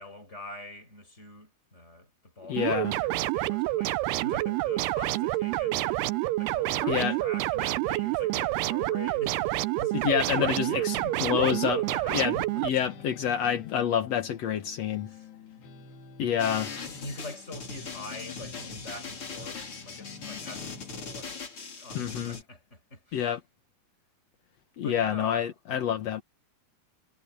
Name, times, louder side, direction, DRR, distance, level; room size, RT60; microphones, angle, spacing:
voice 1, 0.0-12.6 13.0-13.1 15.1-15.3 17.0-21.3 21.8-23.3 24.8-26.0, left 2 dB, 15° left, 6.5 m, -44 dB
voice 2, 2.5-2.9 6.9-7.2 9.9-11.8 12.1-12.4 12.6-15.1 16.2-16.7 21.9-22.4 23.1-23.4 24.8-26.2, left 9 dB, 65° left, 1.7 m, -28 dB
sound 1, 2.6-12.7, right 17 dB, 80° right, 2.7 m, -28 dB
sound 2, 10.2-21.1, left 5 dB, 80° left, 4.7 m, -49 dB
sound 3, 16.4-22.4, left 4 dB, 35° left, 3.8 m, -40 dB
omnidirectional pair, 4.7 m